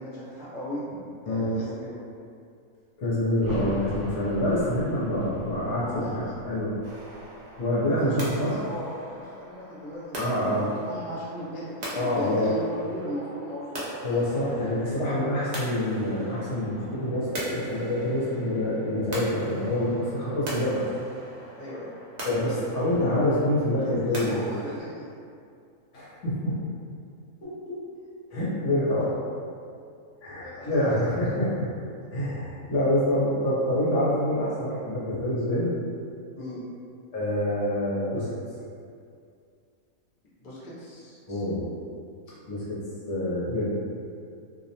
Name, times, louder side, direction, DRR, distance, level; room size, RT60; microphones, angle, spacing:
voice 1, 0.0-2.0 5.8-6.2 7.9-10.2 10.5-14.1 21.5-21.9 23.8-25.0 30.4-30.8 36.4-36.6 40.4-41.2, equal, 45° left, -9 dB, 0.7 m, -37 dB
voice 2, 1.2-1.6 3.0-6.7 7.6-8.6 10.2-10.7 11.9-12.5 14.0-20.8 22.2-24.6 25.9-26.5 27.4-27.8 28.3-29.1 30.2-31.5 32.1-35.7 37.1-38.3 41.3-41.6 42.5-42.8 43.1-43.9, left 1 dB, 65° left, -9 dB, 1.0 m, -26 dB
sound 1, 3.3-8.9 9.2-9.3, equal, 50° right, 0.8 m, -42 dB
sound 2, 6.8-24.8, right 1 dB, 85° right, 0.3 m, -40 dB
2.5 x 2.1 x 2.7 m, 2.4 s
omnidirectional pair, 1.5 m